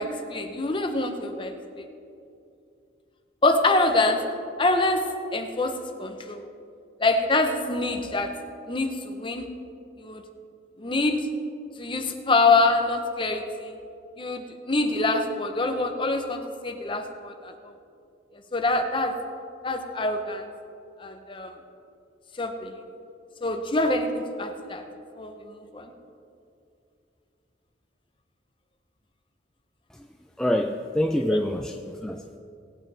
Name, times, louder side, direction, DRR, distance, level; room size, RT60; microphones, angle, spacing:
voice 1, 0.0-1.9 3.4-4.2 4.6-5.0 5.3-6.4 7.0-8.3 8.7-9.5 10.0-10.2 10.8-11.3 11.8-13.8 14.2-17.7 18.5-19.1 19.6-20.4 21.0-21.5 22.4-22.7 23.4-24.8 25.2-25.9, left 2 dB, 25° left, 5 dB, 0.9 m, -25 dB
voice 2, 30.4-32.4, left 1 dB, 5° left, 3 dB, 0.3 m, -26 dB
19.0 x 8.9 x 3.4 m, 2.6 s
head